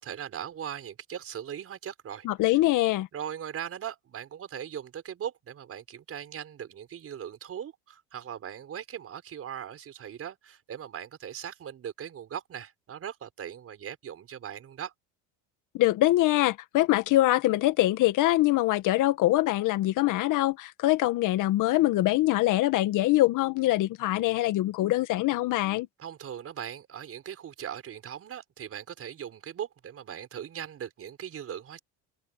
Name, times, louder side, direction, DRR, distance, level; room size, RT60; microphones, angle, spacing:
voice 1, 0.0-2.6 3.1-14.9 26.0-31.8, right 9 dB, 40° right, 5.6 m, -39 dB
voice 2, 2.3-3.1 15.7-25.9, left 16 dB, 60° left, 1.8 m, -24 dB
supercardioid pair, 105°, 35 cm